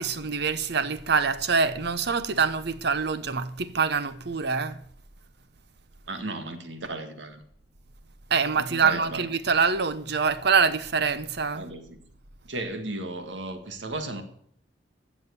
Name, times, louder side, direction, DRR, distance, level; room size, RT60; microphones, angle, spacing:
voice 1, 0.0-4.8 8.3-11.7, right 5 dB, 65° right, 0.9 m, -25 dB
voice 2, 6.1-7.4 8.6-9.3 11.5-12.0 12.5-14.2, right 2 dB, 85° right, 1.9 m, -35 dB
15.0 x 7.3 x 7.0 m
head